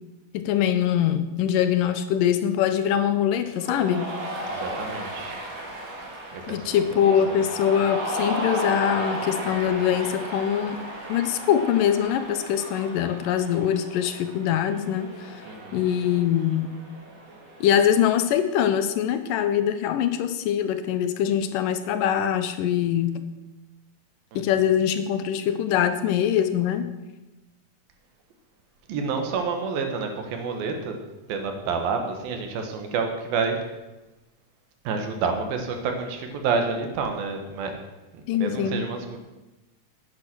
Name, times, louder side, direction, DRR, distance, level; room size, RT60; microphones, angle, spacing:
voice 1, 0.3-4.1 6.5-10.8 11.1-15.4 15.7-16.7 17.6-23.2 24.4-26.9 38.3-38.8, left 9 dB, 75° left, 9 dB, 2.3 m, -23 dB
Cheering, 3.6-18.4, right 1 dB, 50° right, 3.0 m, -35 dB
voice 2, 4.5-5.4 6.3-7.1 15.5-15.8 24.3-24.4 28.9-31.0 31.3-33.6 34.8-37.7 38.1-39.2, right 5 dB, 85° right, 5 dB, 3.3 m, -29 dB
11.0 x 9.5 x 6.2 m, 1.0 s
omnidirectional pair, 4.0 m